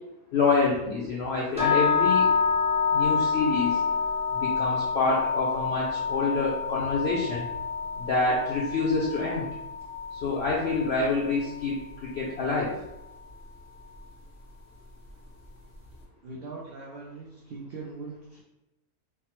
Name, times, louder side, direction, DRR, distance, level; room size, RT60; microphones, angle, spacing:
voice 1, 0.3-2.3 2.9-3.8 4.3-7.5 8.0-9.5 10.2-11.7 12.0-12.7, left 3 dB, 65° left, -5 dB, 0.6 m, -27 dB
sound 1, 1.6-11.6, left 5 dB, 5° right, 0.5 m, -27 dB
voice 2, 16.2-18.4, right 3 dB, 80° right, -2 dB, 0.5 m, -41 dB
3.4 x 2.0 x 2.9 m, 0.96 s
omnidirectional pair, 1.5 m